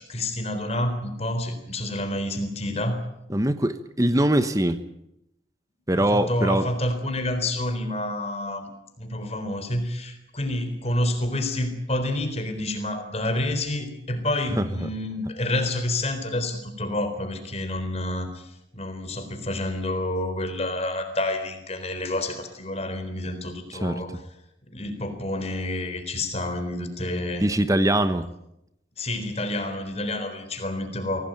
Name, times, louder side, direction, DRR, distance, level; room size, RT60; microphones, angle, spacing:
voice 1, 0.0-3.0 5.9-8.7 9.0-24.1 24.7-27.5 29.0-31.3, left 1 dB, 35° left, 8 dB, 4.0 m, -29 dB
voice 2, 3.3-4.8 5.9-6.7 14.5-14.9 23.8-24.0 27.4-28.2, right 1 dB, 15° right, 11 dB, 1.1 m, -22 dB
24.5 x 17.5 x 9.2 m, 0.83 s
head